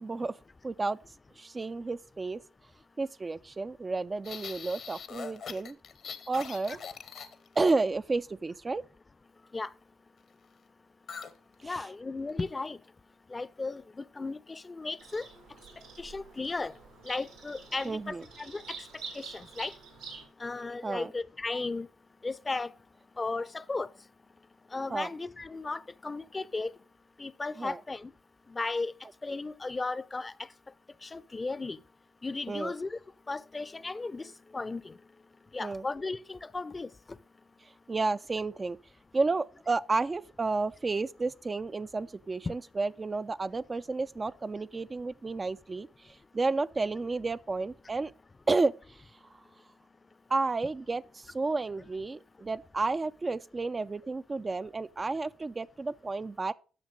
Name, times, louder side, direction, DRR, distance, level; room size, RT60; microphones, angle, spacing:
voice 1, 0.0-0.3 0.6-1.0 1.4-2.4 3.0-5.8 6.3-6.8 7.6-8.8 11.6-11.8 17.8-18.2 20.8-21.1 24.9-25.1 27.6-27.8 32.5-32.7 35.6-35.8 37.9-38.8 39.1-48.1 48.5-48.7 50.3-56.5, right 3 dB, 35° right, 0.4 m, -31 dB
sound 1, 4.2-7.7 11.1-11.4 11.6-11.9 12.3-12.7, left 6 dB, 65° left, 1.0 m, -42 dB
voice 2, 11.6-12.8 13.3-13.8 14.2-15.2 16.0-16.7 17.1-18.6 19.1-19.7 20.4-21.9 22.2-22.7 23.2-23.9 24.7-26.7 27.2-28.1 28.5-28.9 29.2-30.3 31.0-31.8 32.2-33.0 33.3-34.2 34.5-34.9 35.5-36.9, left 3 dB, 30° left, 0.6 m, -35 dB
Bird vocalization bird call bird song, 15.0-20.3, right 5 dB, 90° right, 3.2 m, -47 dB
9.9 x 6.4 x 5.1 m
hypercardioid pair, 45°, 0 cm